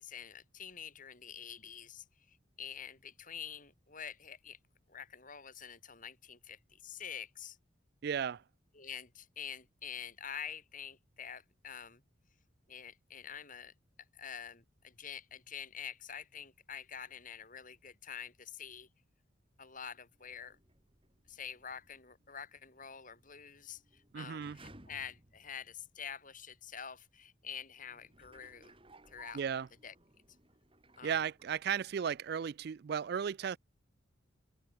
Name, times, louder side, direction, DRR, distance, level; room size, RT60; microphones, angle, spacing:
voice 1, 0.0-4.6 4.9-7.6 8.7-12.0 12.7-13.7 14.1-18.9 19.6-20.6 21.3-28.8 29.1-29.4 29.8-29.9 31.0-31.2, left 8 dB, 45° left, 4.0 m, -47 dB
voice 2, 8.0-8.4 24.1-24.6 29.3-29.7 31.0-33.6, right 7 dB, 55° right, 0.3 m, -35 dB
sound 1, 20.1-26.2 26.8-26.9 27.8-32.1 32.3-32.4, right 2 dB, 30° right, 6.1 m, -61 dB
head